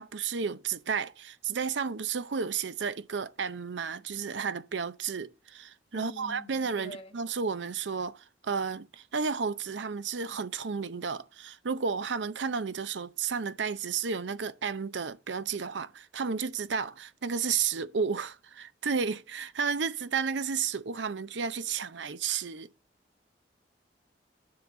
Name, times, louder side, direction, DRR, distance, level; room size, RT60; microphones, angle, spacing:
voice 1, 0.0-22.7, right 6 dB, 85° right, 0.6 m, -32 dB
voice 2, 5.9-7.2, equal, 30° left, 1.4 m, -45 dB
9.6 x 3.9 x 6.6 m
head